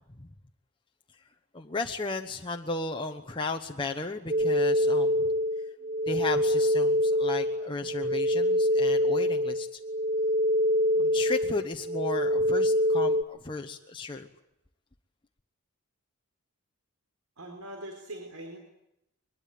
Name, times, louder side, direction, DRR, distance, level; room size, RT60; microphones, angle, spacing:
voice 1, 1.5-5.3 6.1-9.8 11.0-14.3, left 3 dB, 20° left, 3 dB, 1.1 m, -35 dB
sound 1, 4.3-13.2, left 1 dB, 30° right, 1.1 m, -25 dB
voice 2, 17.4-18.6, right 1 dB, 75° right, 2 dB, 4.4 m, -41 dB
23.0 x 21.5 x 9.4 m, 0.83 s
head